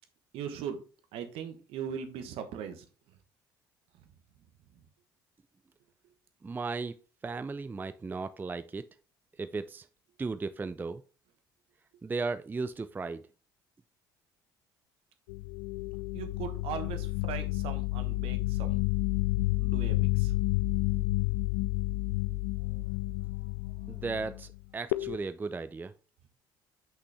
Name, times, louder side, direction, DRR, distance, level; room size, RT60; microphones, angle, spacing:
voice 1, 0.3-0.8 1.1-2.8 16.1-18.8 19.6-20.3, right 8 dB, 65° right, 1.2 m, -39 dB
voice 2, 6.4-7.0 7.2-8.8 9.4-9.9 10.2-11.0 12.0-13.2 23.9-25.9, right 4 dB, 20° right, 0.4 m, -35 dB
sound 1, 15.3-24.6 24.9-25.2, left 20 dB, 75° left, 0.4 m, -30 dB
5.9 x 5.6 x 3.4 m
hypercardioid pair, 60°, 10 cm